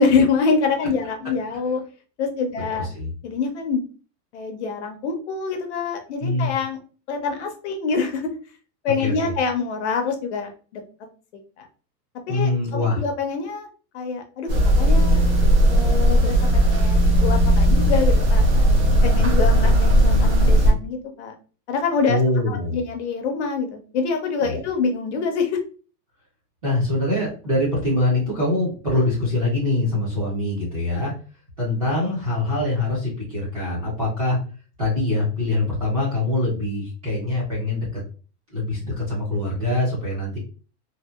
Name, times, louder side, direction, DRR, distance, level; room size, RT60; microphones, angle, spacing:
voice 1, 0.0-1.8 2.2-2.9 3.2-3.8 4.3-6.8 7.1-8.3 8.8-10.8 11.6-11.7 12.3-13.7 13.9-14.5 14.8-15.2 15.7-18.6 19.0-21.3 21.7-22.2 22.5-25.6, left 5 dB, 50° left, 5 dB, 0.4 m, -25 dB
voice 2, 2.8-3.1 6.2-6.5 9.0-9.3 12.3-13.0 22.1-22.8 24.4-24.6 26.6-31.1 31.6-34.4 34.8-38.0 38.5-40.4, left 2 dB, 25° right, -6 dB, 0.3 m, -24 dB
sound 1, 14.5-20.7, equal, 55° right, 0.9 m, -16 dB
2.7 x 2.1 x 2.2 m, 0.37 s
supercardioid pair, 175°, 47 cm